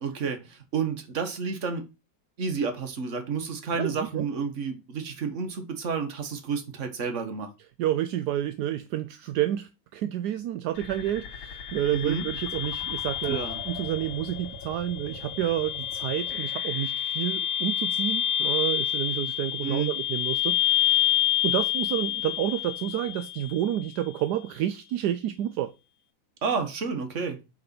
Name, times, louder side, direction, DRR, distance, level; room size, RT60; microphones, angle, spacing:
voice 1, 0.0-1.8 2.4-7.5 11.9-12.2 13.3-13.6 19.6-19.9 26.4-27.4, right 5 dB, 40° right, 1.5 m, -30 dB
voice 2, 3.7-4.3 7.8-25.7, right 12 dB, 70° right, 1.0 m, -30 dB
sound 1, 10.8-23.8, left 12 dB, 80° left, 2.4 m, -29 dB
6.0 x 5.1 x 5.9 m
omnidirectional pair, 2.1 m